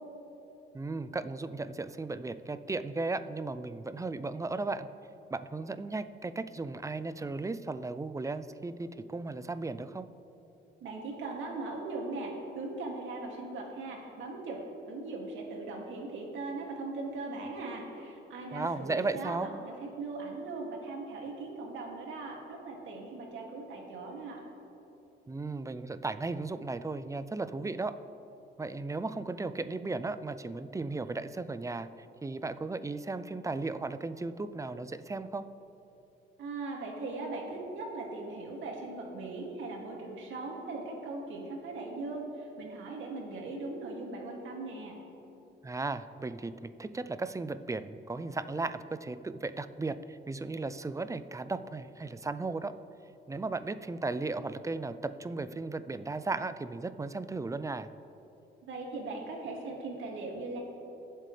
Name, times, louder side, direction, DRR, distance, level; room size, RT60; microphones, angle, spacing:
voice 1, 0.7-4.9 5.3-10.0 18.5-19.5 25.3-27.9 28.6-31.9 32.2-35.5 45.6-52.7 53.3-57.9, right 3 dB, 15° right, 13 dB, 0.5 m, -35 dB
voice 2, 10.8-14.6 14.9-24.4 36.4-45.0 58.6-60.6, right 3 dB, 75° right, -1 dB, 2.5 m, -39 dB
21.5 x 7.7 x 3.3 m, 3.0 s
cardioid pair, 90°, 20 cm